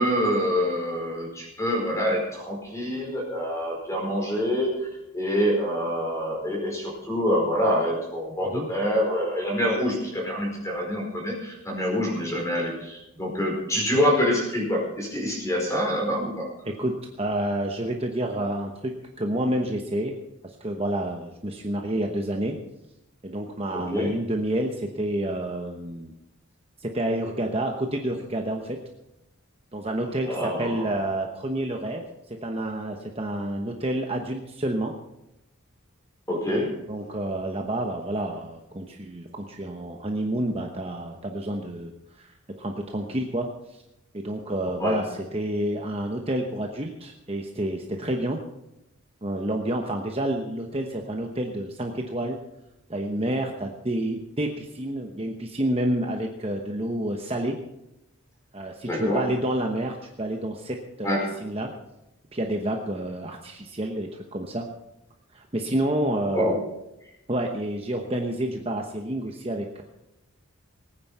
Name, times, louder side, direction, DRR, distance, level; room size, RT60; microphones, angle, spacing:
voice 1, 0.0-4.9 5.1-16.5 23.7-24.1 30.2-30.9 36.3-36.7 44.8-45.0 58.8-59.2 61.0-61.3 66.3-66.6, equal, 15° left, -1 dB, 4.8 m, -26 dB
voice 2, 16.6-20.1 20.4-22.5 23.2-26.1 26.8-28.8 29.7-34.9 36.9-42.3 42.6-43.8 44.1-48.4 49.2-52.4 52.9-57.6 58.5-61.1 61.4-61.7 62.3-64.7 65.3-66.6 67.3-69.8, right 1 dB, 25° right, 2 dB, 1.0 m, -29 dB
19.0 x 9.5 x 5.5 m, 0.88 s
head